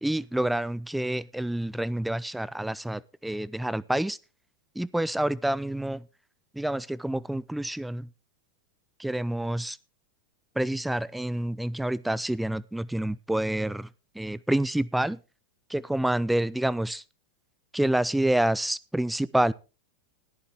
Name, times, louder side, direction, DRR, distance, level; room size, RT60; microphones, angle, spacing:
voice 1, 0.0-4.2 4.8-6.0 6.5-8.1 9.0-9.8 10.6-13.9 14.1-15.2 15.7-17.0 17.7-19.5, right 1 dB, 5° right, 0.6 m, -28 dB
14.5 x 10.5 x 3.6 m
hypercardioid pair, 110°, 0 cm